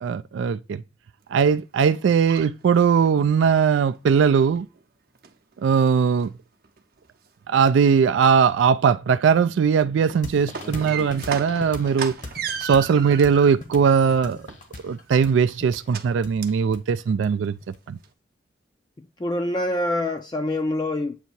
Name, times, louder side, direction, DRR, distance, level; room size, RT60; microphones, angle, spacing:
voice 1, 0.0-0.8 1.3-4.7 5.6-6.3 7.5-12.1 12.6-14.4 14.8-17.5 17.9-18.0, right 6 dB, 85° right, 0.3 m, -20 dB
sound 1, 1.9-3.2 3.7-4.0 4.3-4.8 5.1-5.8 6.2-6.3 6.6-7.3 7.6-7.7 9.9-13.6 14.0-15.1 15.9-16.1 16.4-16.6 17.0-17.1 17.4-17.5 18.0-18.1, right 6 dB, 55° right, 0.7 m, -36 dB
sound 2, 10.2-17.8, left 2 dB, 40° left, 0.9 m, -39 dB
voice 2, 19.0-21.1, left 1 dB, 25° left, 0.4 m, -26 dB
7.9 x 2.8 x 4.3 m
head